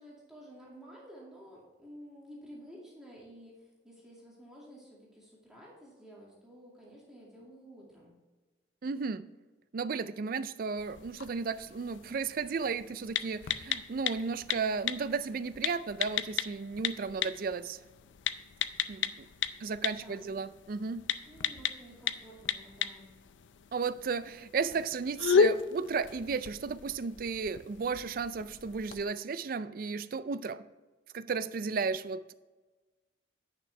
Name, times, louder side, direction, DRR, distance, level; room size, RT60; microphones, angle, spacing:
voice 1, 0.0-8.1 20.0-20.4 21.3-23.1, equal, 5° right, -6 dB, 2.2 m, -52 dB
voice 2, 8.8-9.3 9.7-17.8 18.9-19.3 19.6-21.1 23.7-30.6 31.1-32.3, right 5 dB, 50° right, 14 dB, 0.4 m, -34 dB
sound 1, 10.8-29.0, left 6 dB, 85° left, 0.5 m, -35 dB
10.5 x 6.0 x 3.3 m, 1.2 s
head